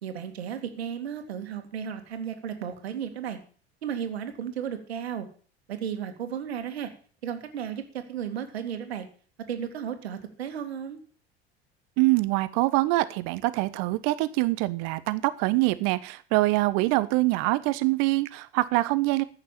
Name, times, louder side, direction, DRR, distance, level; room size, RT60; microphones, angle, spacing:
voice 1, 0.0-3.4 3.8-5.3 5.7-6.9 7.2-9.1 9.5-11.0, right 8 dB, 70° right, 6 dB, 2.4 m, -34 dB
voice 2, 12.0-19.2, right 20 dB, 55° right, 15 dB, 1.2 m, -24 dB
14.5 x 6.6 x 8.6 m, 0.42 s
figure-of-eight pair, 70°, 32 cm